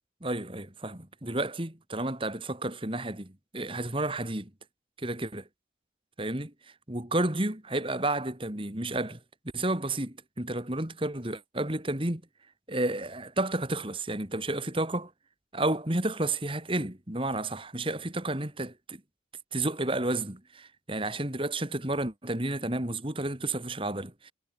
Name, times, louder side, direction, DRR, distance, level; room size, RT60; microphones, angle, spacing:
voice 1, 0.2-4.5 5.0-5.4 6.2-6.5 6.9-9.2 9.5-12.2 12.7-15.1 15.5-19.0 19.5-24.3, right 2 dB, 30° right, 2.6 m, -31 dB
head